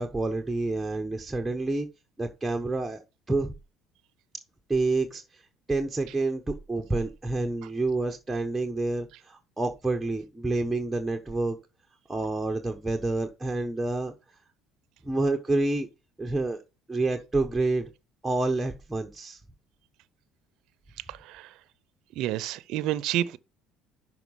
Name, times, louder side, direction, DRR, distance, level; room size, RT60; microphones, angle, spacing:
voice 1, 0.0-1.9 2.2-3.0 3.3-3.5 4.7-5.4 5.7-11.6 12.1-14.1 15.0-15.9 16.2-16.6 16.9-17.9 18.2-19.4, right 2 dB, 10° right, 1.0 m, -28 dB
voice 2, 21.1-21.5 22.2-23.4, right 13 dB, 70° right, 0.6 m, -29 dB
6.0 x 4.8 x 5.5 m
supercardioid pair, 90°, 0 cm